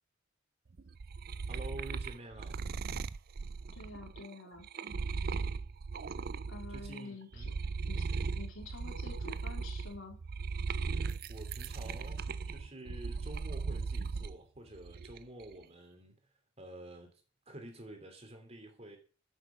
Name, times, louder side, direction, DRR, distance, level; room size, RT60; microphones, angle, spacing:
sound 1, 0.8-7.0 7.3-14.3 14.7-15.4, right 4 dB, 50° right, 0.4 m, -38 dB
voice 1, 1.5-2.6 6.7-7.6 10.8-16.1 16.6-17.1 17.5-19.0, right 1 dB, 30° right, 3.0 m, -49 dB
voice 2, 3.7-4.7 6.5-7.5 7.9-8.0 8.4-10.2, left 3 dB, 85° left, 3.4 m, -48 dB
8.9 x 7.8 x 7.1 m
head